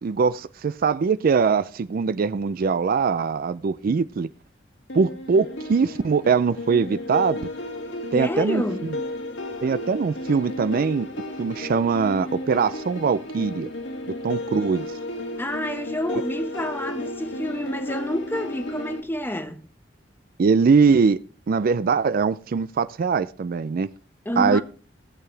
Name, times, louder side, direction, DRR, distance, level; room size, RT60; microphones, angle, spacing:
voice 1, 0.0-4.3 4.9-7.5 8.1-9.0 9.6-11.1 11.4-13.7 14.2-14.9 20.4-21.2 21.5-23.9 24.4-24.6, right 5 dB, 50° right, 0.4 m, -22 dB
sound 1, 4.9-19.0, left 1 dB, 85° left, 2.0 m, -33 dB
voice 2, 8.1-8.8 15.4-19.6 24.2-24.6, equal, 10° left, 1.1 m, -28 dB
18.0 x 6.9 x 3.3 m
head